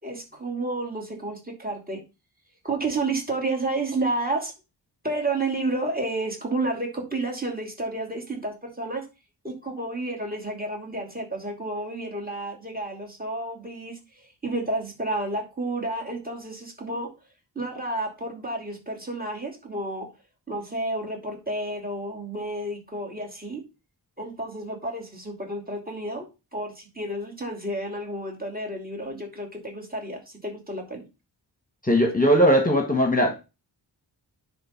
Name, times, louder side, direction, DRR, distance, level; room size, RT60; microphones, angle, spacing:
voice 1, 0.0-2.0 2.6-4.5 5.0-9.1 9.4-17.1 17.5-20.1 20.5-23.6 24.2-26.3 26.5-31.0, right 2 dB, 20° right, 2.7 m, -31 dB
voice 2, 31.8-33.3, equal, 20° left, 1.3 m, -19 dB
9.9 x 3.7 x 5.8 m
wide cardioid pair, 120°, 44 cm